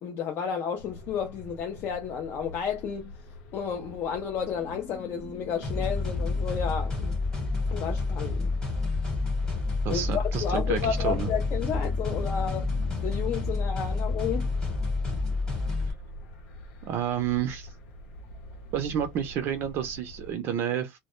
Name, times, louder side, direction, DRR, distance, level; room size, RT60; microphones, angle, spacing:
voice 1, 0.0-3.1 3.5-7.2 7.7-8.5 9.9-12.7 13.0-14.5, left 7 dB, 35° left, 0.4 m, -32 dB
sound 1, 0.8-20.3, left 1 dB, 75° left, 0.8 m, -45 dB
sound 2, 5.6-15.9, left 3 dB, 10° left, 1.0 m, -29 dB
voice 2, 9.8-11.3 16.8-17.7 18.7-21.0, right 9 dB, 40° right, 0.5 m, -30 dB
2.1 x 2.0 x 3.0 m
cardioid pair, 170°, 6 cm